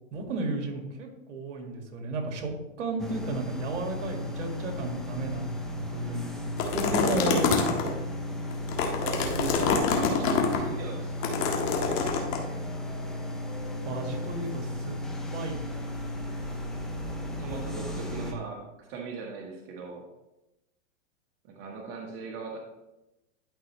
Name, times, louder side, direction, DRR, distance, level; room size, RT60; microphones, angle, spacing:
voice 1, 0.1-2.5 2.8-8.0 13.8-15.0 15.3-15.9, right 2 dB, 65° right, 3 dB, 2.0 m, -34 dB
sound 1, 3.0-18.3, left 1 dB, ahead, 0.7 m, -35 dB
sound 2, 6.6-7.9 8.5-10.6 11.2-12.4, left 5 dB, 35° left, 1.6 m, -26 dB
voice 2, 9.0-12.5 17.3-20.0 21.4-22.6, right 4 dB, 35° right, -1 dB, 1.4 m, -39 dB
11.5 x 5.5 x 3.1 m, 0.95 s
hypercardioid pair, 135°, 38 cm